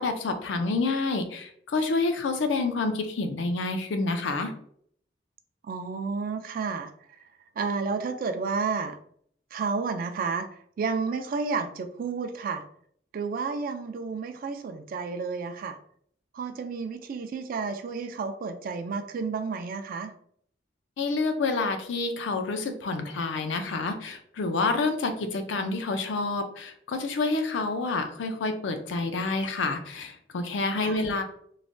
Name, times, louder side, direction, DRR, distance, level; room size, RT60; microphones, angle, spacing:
voice 1, 0.0-4.5 21.0-31.2, left 3 dB, 85° left, 7 dB, 0.5 m, -28 dB
voice 2, 5.7-6.9 7.6-9.0 9.5-10.5 10.8-12.6 13.1-15.8 16.3-20.1 30.8-31.0, right 5 dB, 50° right, 8 dB, 0.3 m, -31 dB
3.1 x 2.1 x 2.6 m, 0.63 s
head